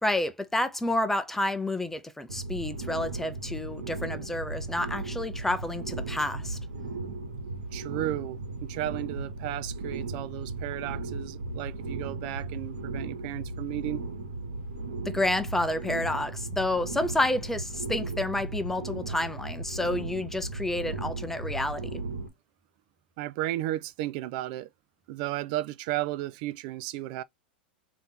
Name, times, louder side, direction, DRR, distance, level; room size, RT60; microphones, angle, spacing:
voice 1, 0.0-6.6 15.1-22.0, left 1 dB, 5° left, 0.7 m, -29 dB
sound 1, 2.3-22.3, right 3 dB, 85° right, 1.3 m, -36 dB
voice 2, 7.7-14.0 23.2-24.7 25.1-27.2, right 15 dB, 55° right, 0.3 m, -34 dB
3.5 x 2.9 x 4.0 m
hypercardioid pair, 110°, 5 cm